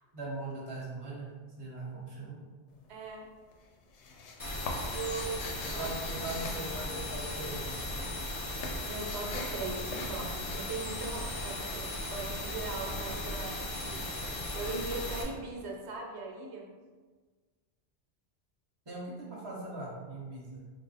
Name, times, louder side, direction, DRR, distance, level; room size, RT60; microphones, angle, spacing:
voice 1, 0.1-1.3 1.6-2.4 5.7-8.0 18.9-20.6, right 2 dB, 25° right, -5 dB, 0.8 m, -40 dB
sound 1, 2.7-3.2 3.5-7.6 7.8-13.4, left 3 dB, 85° left, 0.9 m, -44 dB
voice 2, 2.9-3.3 4.9-5.9 6.3-6.7 8.9-16.7, right 3 dB, 75° right, 0 dB, 0.9 m, -40 dB
sound 2, 4.4-15.2, left 1 dB, 35° left, 0.3 m, -37 dB
3.4 x 2.0 x 3.9 m, 1.4 s
omnidirectional pair, 1.1 m